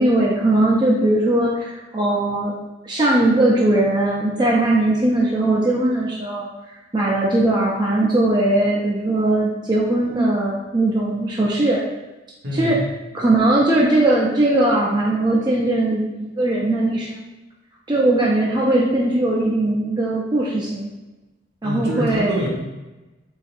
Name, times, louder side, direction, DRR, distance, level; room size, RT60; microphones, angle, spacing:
voice 1, 0.0-2.5 2.8-6.5 6.9-11.8 12.5-12.8 13.1-17.3 17.9-20.9 21.6-22.4, right 1 dB, 25° right, -4 dB, 0.5 m, -19 dB
voice 2, 12.4-12.8 21.6-22.5, right 1 dB, 60° right, -3 dB, 1.2 m, -25 dB
4.0 x 3.8 x 2.5 m, 1.1 s
head